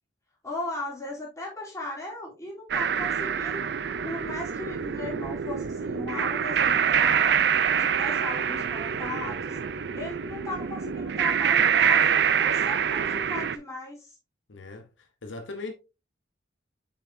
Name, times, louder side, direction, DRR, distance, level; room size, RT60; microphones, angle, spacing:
voice 1, 0.4-3.6 4.0-7.4 7.8-9.6 9.9-14.2, left 2 dB, 15° left, 3.1 m, -37 dB
sound 1, 2.7-13.6, right 7 dB, 60° right, 0.4 m, -25 dB
voice 2, 14.5-15.7, left 3 dB, 75° left, 0.8 m, -39 dB
7.0 x 6.1 x 2.6 m
head